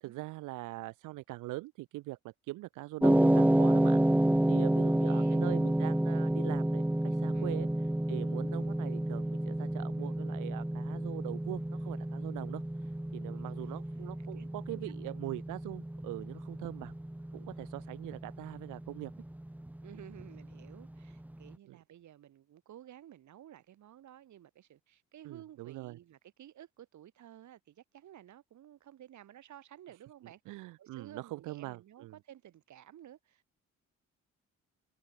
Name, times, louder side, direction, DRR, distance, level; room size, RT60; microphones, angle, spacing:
voice 1, 0.0-7.7 8.1-16.9 17.3-19.1 21.7-21.8 25.2-26.0 30.5-32.2, right 19 dB, 90° right, 2.0 m, -42 dB
sound 1, 3.0-21.3, right 1 dB, 5° right, 1.3 m, -30 dB
voice 2, 4.6-5.5 7.3-7.5 14.3-15.2 19.8-33.6, right 11 dB, 65° right, 6.5 m, -54 dB
cardioid pair, 80°, 31 cm